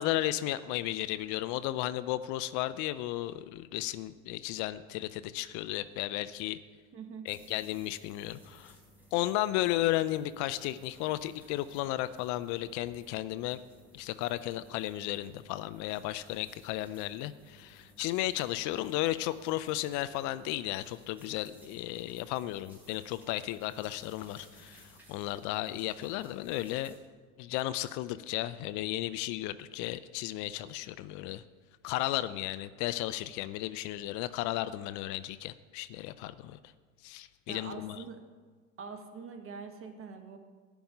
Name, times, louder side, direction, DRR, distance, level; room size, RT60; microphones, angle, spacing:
voice 1, 0.0-6.6 7.3-8.8 9.1-13.6 13.9-27.0 27.4-31.4 31.8-36.6 37.0-38.0, left 15 dB, 45° left, 15 dB, 0.5 m, -34 dB
voice 2, 6.9-7.3 37.5-38.2 38.8-40.4, right 5 dB, 30° right, 5 dB, 1.6 m, -44 dB
sound 1, 7.3-27.0, right 1 dB, 5° right, 3.8 m, -59 dB
12.0 x 5.4 x 8.8 m, 1.5 s
hypercardioid pair, 90°, 40 cm